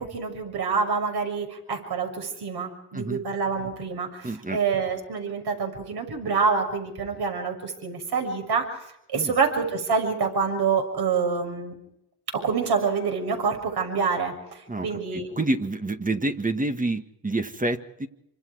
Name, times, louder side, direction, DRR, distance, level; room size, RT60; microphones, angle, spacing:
voice 1, 0.0-11.8 12.3-15.3, right 5 dB, 60° right, 4 dB, 6.5 m, -27 dB
voice 2, 4.2-4.6 9.1-9.3 14.7-18.1, right 2 dB, 20° right, 7 dB, 1.7 m, -28 dB
27.0 x 25.5 x 4.9 m, 0.79 s
cardioid pair, 85°, 43 cm